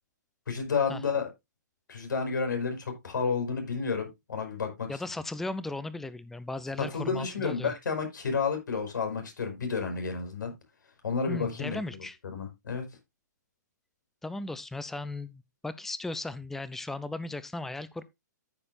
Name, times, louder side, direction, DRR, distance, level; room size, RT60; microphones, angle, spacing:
voice 1, 0.5-1.3 1.9-5.0 6.9-10.5 11.0-12.8, left 5 dB, 80° left, 5.3 m, -31 dB
voice 2, 4.9-7.7 11.3-12.2 14.2-18.0, left 2 dB, 5° left, 0.5 m, -36 dB
14.0 x 6.9 x 2.6 m
hypercardioid pair, 140°, 10 cm